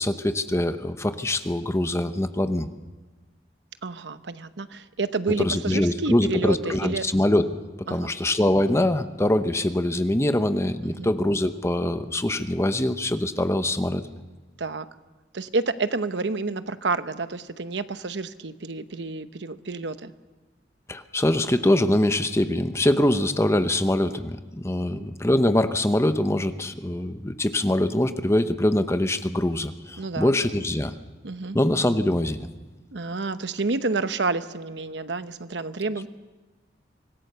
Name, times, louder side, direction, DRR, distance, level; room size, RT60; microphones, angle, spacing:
voice 1, 0.0-2.7 5.4-7.4 7.9-14.0 20.9-30.9 31.5-32.5, left 1 dB, 15° left, 9 dB, 0.8 m, -23 dB
voice 2, 3.8-7.0 7.9-8.1 10.8-11.1 14.6-14.9 15.3-20.1 24.8-25.1 30.0-30.4 31.2-31.6 32.9-36.1, right 3 dB, 75° right, 11 dB, 0.9 m, -29 dB
25.0 x 18.5 x 6.8 m, 1.3 s
head